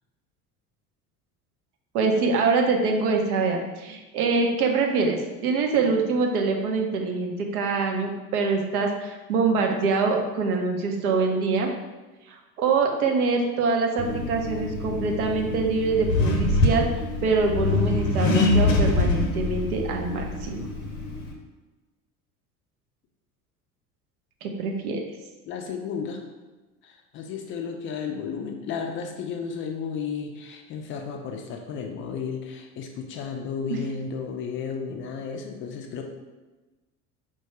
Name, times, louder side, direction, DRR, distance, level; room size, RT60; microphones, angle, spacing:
voice 1, 1.9-11.7 12.6-16.9 17.2-20.7 24.4-25.0 33.7-33.8, right 4 dB, 70° right, 2 dB, 0.7 m, -24 dB
Accelerating revving vroom, 14.0-21.3, left 2 dB, 75° left, 0.7 m, -25 dB
voice 2, 25.5-26.2 26.8-36.0, left 6 dB, 30° left, 3 dB, 0.3 m, -33 dB
4.5 x 2.2 x 2.9 m, 1.2 s
figure-of-eight pair, 65°, 46 cm